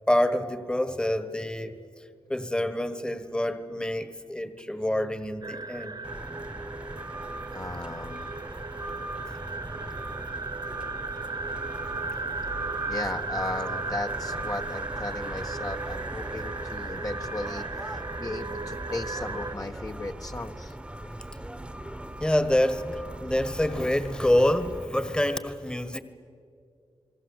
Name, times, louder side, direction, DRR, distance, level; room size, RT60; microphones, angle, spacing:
voice 1, 0.1-2.0 2.3-6.0 8.9-9.0 22.2-26.0, left 1 dB, 10° left, 1.5 m, -27 dB
sound 1, 5.4-19.5, right 3 dB, 45° right, 1.5 m, -36 dB
sound 2, 6.0-24.8, right 1 dB, 10° right, 1.3 m, -39 dB
voice 2, 7.5-8.3 12.9-20.7, left 2 dB, 35° left, 1.3 m, -36 dB
28.5 x 21.0 x 8.0 m
cardioid pair, 65°, 10 cm